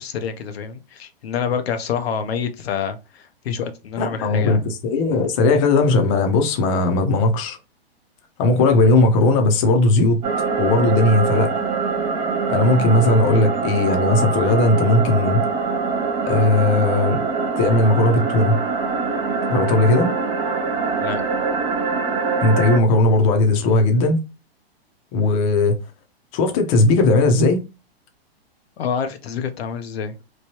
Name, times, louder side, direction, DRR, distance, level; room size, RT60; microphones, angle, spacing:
voice 1, 0.0-4.6 21.0-21.2 28.8-30.1, left 7 dB, 80° left, 0.6 m, -27 dB
voice 2, 4.0-7.6 8.4-10.2 10.6-11.5 12.5-15.4 16.2-17.2 17.6-18.6 19.5-20.1 22.4-24.2 25.1-25.8 26.3-27.6, left 2 dB, 35° left, 0.6 m, -17 dB
sound 1, 10.2-22.8, right 4 dB, 15° right, 0.5 m, -23 dB
3.0 x 2.2 x 2.8 m
hypercardioid pair, 140°, 31 cm